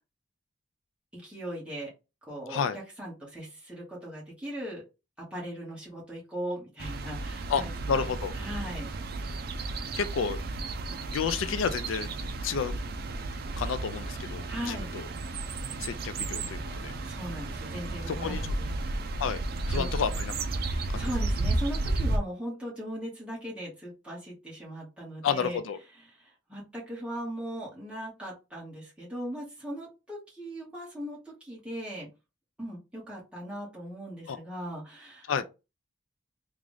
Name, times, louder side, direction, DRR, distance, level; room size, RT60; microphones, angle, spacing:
voice 1, 1.1-1.9 2.3-4.8 5.3-8.1 8.4-8.9 14.5-14.9 17.0-18.7 19.7-19.9 20.6-25.6 26.1-32.1 32.6-35.4, right 1 dB, 5° right, 1.8 m, -39 dB
sound 1, 6.8-22.2, right 2 dB, 50° right, 0.5 m, -33 dB
voice 2, 7.5-8.3 9.9-10.4 11.1-12.1 12.4-12.7 13.6-15.1 15.8-16.9 18.1-18.4 19.2-19.4 19.7-20.3 20.9-21.0 25.2-25.8 34.3-34.4 35.3-35.4, left 6 dB, 90° left, 0.4 m, -30 dB
3.6 x 2.5 x 3.3 m
head